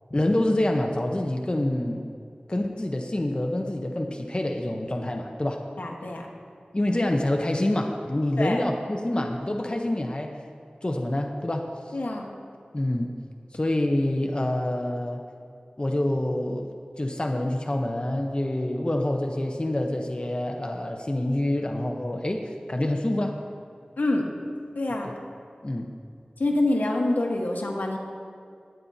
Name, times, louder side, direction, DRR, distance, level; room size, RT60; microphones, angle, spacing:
voice 1, 0.1-2.0 2.5-5.6 6.7-10.3 10.8-11.7 12.7-13.1 13.5-15.2 15.8-23.4 25.6-25.9, left 1 dB, 35° left, 2 dB, 0.8 m, -26 dB
voice 2, 5.8-6.3 8.4-8.6 11.9-12.3 24.0-24.3 24.7-25.1 26.4-28.0, left 2 dB, 80° left, 1 dB, 1.3 m, -26 dB
19.5 x 8.6 x 2.7 m, 2.3 s
wide cardioid pair, 50°, 3 cm